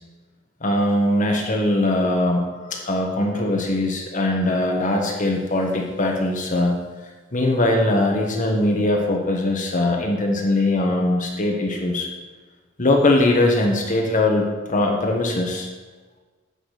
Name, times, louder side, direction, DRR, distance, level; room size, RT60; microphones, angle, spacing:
voice 1, 0.6-6.8 7.3-12.1 12.8-15.7, left 1 dB, 40° left, 1 dB, 1.4 m, -21 dB
9.0 x 6.0 x 6.7 m, 1.3 s
head